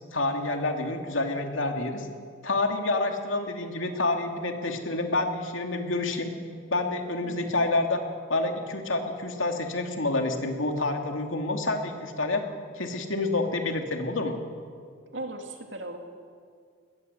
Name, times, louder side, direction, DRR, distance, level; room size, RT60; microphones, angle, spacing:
voice 1, 0.1-2.1 2.4-6.3 6.7-8.0 8.3-12.4 12.7-14.4, left 2 dB, 85° left, 4 dB, 2.6 m, -28 dB
voice 2, 7.2-7.6 15.1-16.0, right 2 dB, 70° right, 3 dB, 2.9 m, -38 dB
21.0 x 20.5 x 8.1 m, 2.1 s
head